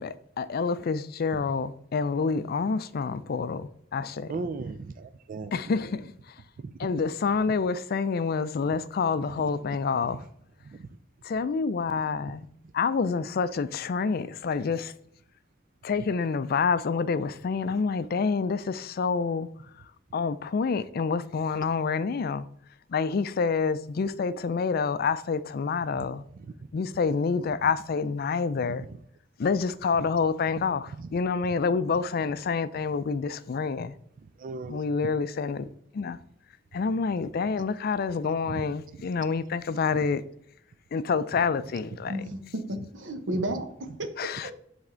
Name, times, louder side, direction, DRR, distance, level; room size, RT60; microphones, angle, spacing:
voice 1, 0.0-4.4 5.5-6.1 6.8-10.2 11.2-12.5 12.7-14.9 15.8-19.5 20.1-22.5 22.9-26.2 26.7-28.8 29.4-33.9 34.7-35.7 35.9-36.2 36.7-40.2 40.9-42.2 44.2-44.5, left 5 dB, 55° left, 0.4 m, -27 dB
voice 2, 4.3-5.5 6.6-6.7 9.4-9.5 10.8-10.9 25.9-26.0 31.0-31.1 34.4-34.8 38.5-38.6, right 4 dB, 45° right, 0.3 m, -36 dB
voice 3, 42.1-44.5, right 1 dB, 85° right, 0.9 m, -33 dB
7.4 x 3.5 x 3.8 m
head